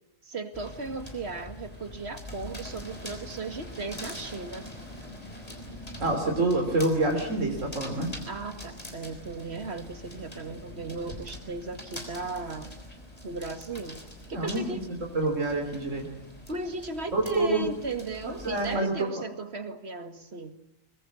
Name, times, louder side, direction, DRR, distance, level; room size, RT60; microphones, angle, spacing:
voice 1, 0.2-4.7 8.3-12.7 13.2-14.0 14.3-14.8 16.5-20.6, right 3 dB, 50° right, 8 dB, 2.4 m, -36 dB
sound 1, 0.5-18.8, left 1 dB, 30° left, 5.6 m, -43 dB
voice 2, 6.0-8.1 14.3-14.8 15.1-16.1 17.1-17.7 18.4-18.9, right 2 dB, 70° right, 2 dB, 3.7 m, -27 dB
25.0 x 22.0 x 8.5 m, 0.86 s
omnidirectional pair, 1.4 m